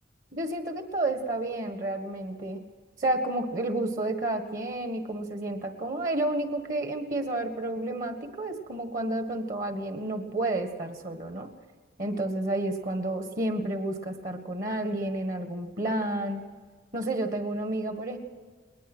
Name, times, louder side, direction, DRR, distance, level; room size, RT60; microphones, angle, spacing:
voice 1, 0.3-2.6 3.0-11.5 12.0-16.4 16.9-18.2, right 2 dB, 50° right, 6 dB, 1.7 m, -30 dB
21.0 x 20.0 x 6.3 m, 1.5 s
head